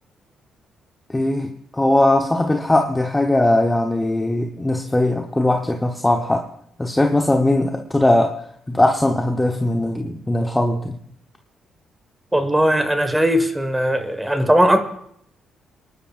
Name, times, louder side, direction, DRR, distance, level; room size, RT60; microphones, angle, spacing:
voice 1, 1.1-6.5 6.8-11.0, left 1 dB, 10° left, 3 dB, 1.0 m, -19 dB
voice 2, 12.3-14.8, equal, 10° right, 7 dB, 1.5 m, -18 dB
28.0 x 11.5 x 2.5 m, 0.69 s
cardioid pair, 90°, 0 cm